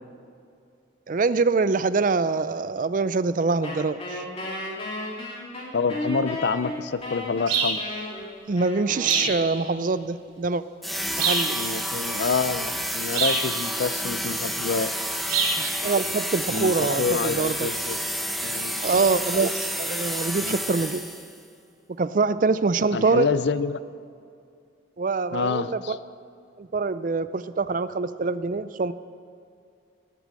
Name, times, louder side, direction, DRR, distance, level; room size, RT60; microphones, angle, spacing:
voice 1, 1.1-4.2 8.5-10.6 11.2-11.6 15.6-17.7 18.8-21.0 22.0-23.3 25.0-26.0 26.6-28.9, right 4 dB, 40° right, 14 dB, 0.4 m, -24 dB
Wind instrument woodwind instrument, 3.6-9.9, left 1 dB, 30° left, 2.5 m, -34 dB
voice 2, 5.7-7.8 11.5-14.9 16.5-18.0 18.4-18.8 20.4-20.6 22.9-23.8 25.3-26.0, left 5 dB, 60° left, 14 dB, 0.5 m, -27 dB
sound 1, 7.5-7.8 9.0-9.4 11.2-11.5 13.1-13.5 15.3-15.6, right 5 dB, 85° right, 3.9 m, -24 dB
sound 2, 10.8-21.4, equal, ahead, 0.8 m, -30 dB
18.0 x 8.4 x 7.5 m, 2.4 s
head